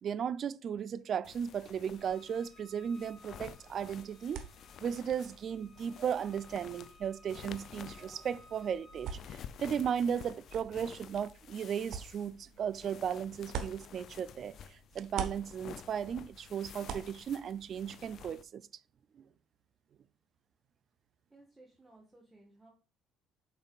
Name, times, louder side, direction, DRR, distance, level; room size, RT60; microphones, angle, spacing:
voice 1, 0.0-4.4 4.8-18.6 19.2-19.3, right 8 dB, 45° right, 0.4 m, -36 dB
sound 1, 1.2-18.4, left 9 dB, 55° left, 0.4 m, -52 dB
Bowed string instrument, 1.9-9.2, left 3 dB, 25° left, 2.2 m, -60 dB
sound 2, 3.4-14.6 14.9-18.3, right 7 dB, 70° right, 1.0 m, -47 dB
voice 2, 21.3-22.7, right 2 dB, 15° right, 1.5 m, -59 dB
7.4 x 5.4 x 2.4 m
cardioid pair, 115°, 0 cm